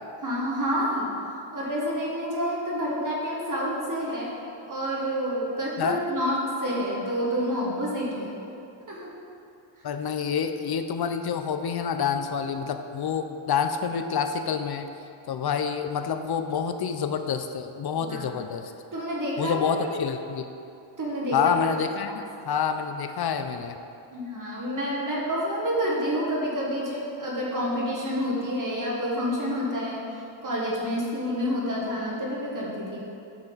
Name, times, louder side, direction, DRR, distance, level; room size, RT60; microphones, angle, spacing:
voice 1, 0.2-1.1 1.5-4.4 4.7-8.3 8.9-9.1 18.0-18.2 18.9-19.9 21.0-21.5 22.1-22.2 24.1-30.1 30.4-33.0, equal, 40° right, -4 dB, 1.6 m, -28 dB
voice 2, 9.8-14.9 15.3-18.7 19.4-20.4 21.3-23.8, left 7 dB, 50° left, 8 dB, 0.6 m, -28 dB
8.9 x 5.8 x 3.9 m, 2.7 s
cardioid pair, 100°, 48 cm